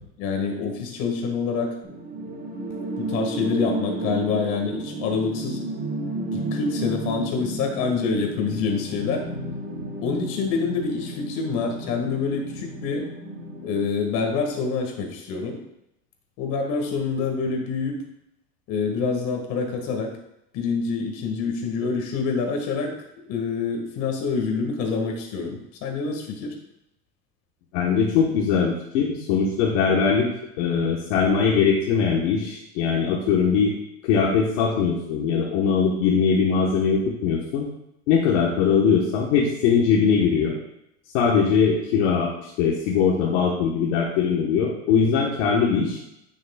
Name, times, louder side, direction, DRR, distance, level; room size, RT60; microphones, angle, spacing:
voice 1, 0.2-1.7 3.0-5.6 6.3-9.3 10.0-13.0 13.6-15.6 16.4-18.0 18.7-20.1 20.5-26.5, left 4 dB, 55° left, 2 dB, 1.9 m, -26 dB
sound 1, 1.8-13.8, right 1 dB, 25° right, 1.5 m, -32 dB
voice 2, 27.7-30.3 30.6-33.7 34.0-37.7 38.1-40.5 41.1-46.0, left 6 dB, 75° left, -2 dB, 1.3 m, -21 dB
9.8 x 6.4 x 2.4 m, 0.83 s
supercardioid pair, 135°, 36 cm